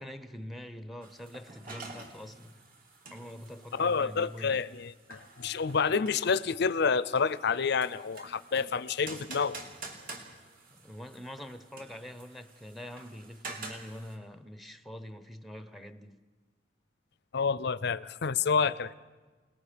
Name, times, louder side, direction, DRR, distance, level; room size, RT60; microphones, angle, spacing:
voice 1, 0.0-2.6 3.1-4.6 10.7-16.3 17.8-17.9 18.7-18.8, left 1 dB, ahead, 0.8 m, -45 dB
sound 1, 1.0-14.2, right 3 dB, 50° right, 3.3 m, -48 dB
voice 2, 3.7-9.6 17.3-18.9, left 5 dB, 60° left, 0.6 m, -29 dB
28.5 x 20.0 x 5.2 m
head